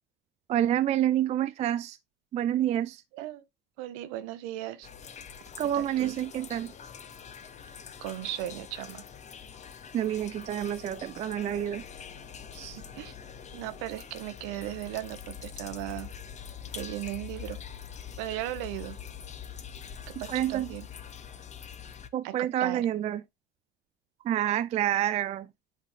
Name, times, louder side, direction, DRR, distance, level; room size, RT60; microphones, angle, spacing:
voice 1, 0.5-2.0 2.3-3.0 5.6-6.7 9.9-11.8 12.5-12.8 20.3-20.7 22.1-23.2 24.2-25.5, right 11 dB, 25° right, 0.4 m, -28 dB
voice 2, 3.1-3.4 3.8-4.9 5.7-6.1 8.0-9.0 12.7-13.1 13.5-16.1 16.7-17.6 18.2-19.0 20.1-20.9 22.2-22.9, right 15 dB, 55° right, 0.9 m, -37 dB
sound 1, 4.8-22.1, left 7 dB, 25° left, 0.8 m, -44 dB
11.0 x 3.9 x 2.2 m
figure-of-eight pair, 75°, 30 cm